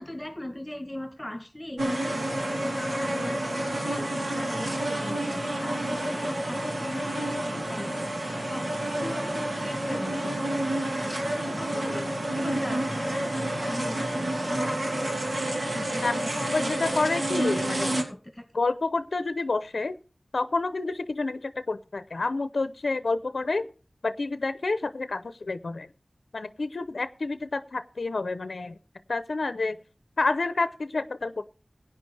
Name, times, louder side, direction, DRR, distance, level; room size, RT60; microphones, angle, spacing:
voice 1, 0.0-10.5 10.9-15.3 15.7-17.1 17.7-18.5, left 1 dB, 15° left, 2.0 m, -39 dB
sound 1, 1.8-18.0, right 1 dB, 75° right, 2.8 m, -29 dB
voice 2, 16.0-17.9 18.5-20.0 20.3-23.7 24.0-25.9 26.3-28.8 29.1-29.8 30.2-31.5, left 3 dB, 85° left, 0.7 m, -29 dB
17.0 x 9.7 x 3.3 m
wide cardioid pair, 50°, 0 cm